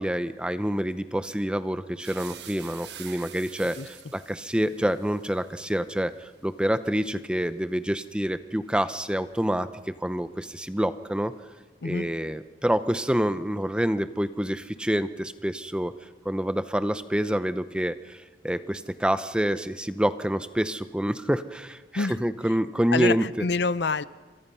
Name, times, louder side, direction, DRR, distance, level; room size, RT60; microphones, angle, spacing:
voice 1, 0.0-9.7 10.0-11.3 11.8-15.9 16.2-23.2, equal, 5° right, 12 dB, 0.7 m, -27 dB
sound 1, 2.0-10.0 10.3-11.4, right 10 dB, 75° right, 1.4 m, -49 dB
voice 2, 22.9-24.0, left 4 dB, 75° left, 16 dB, 0.7 m, -26 dB
28.0 x 25.5 x 5.6 m, 1.4 s
head